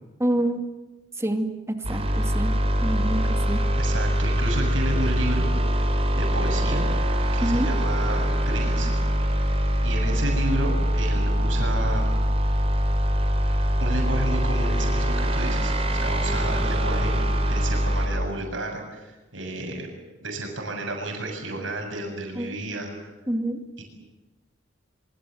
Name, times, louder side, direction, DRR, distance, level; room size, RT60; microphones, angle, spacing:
voice 1, 0.2-0.6 1.2-2.5 2.8-3.6 7.4-7.7 22.3-22.5 23.3-23.6, right 1 dB, 15° right, 6 dB, 2.6 m, -27 dB
sound 1, 1.8-18.1, equal, 30° right, 4.3 m, -23 dB
voice 2, 3.8-5.5 6.1-6.9 7.3-9.0 9.3-12.2 13.8-19.9 20.2-23.1 23.8-23.9, right 1 dB, 85° right, 2 dB, 7.4 m, -32 dB
25.0 x 24.0 x 8.0 m, 1.1 s
head